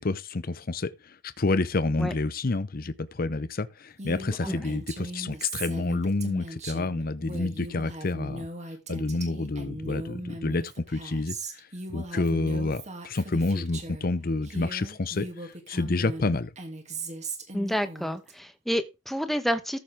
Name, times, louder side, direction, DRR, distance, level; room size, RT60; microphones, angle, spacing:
voice 1, 0.0-8.5 8.9-16.5, left 2 dB, 50° left, 0.7 m, -29 dB
Female speech woman speaking, 4.0-14.1 14.4-18.3, right 2 dB, 40° right, 2.7 m, -39 dB
voice 2, 17.5-19.8, equal, ahead, 1.1 m, -29 dB
14.0 x 7.0 x 3.6 m
head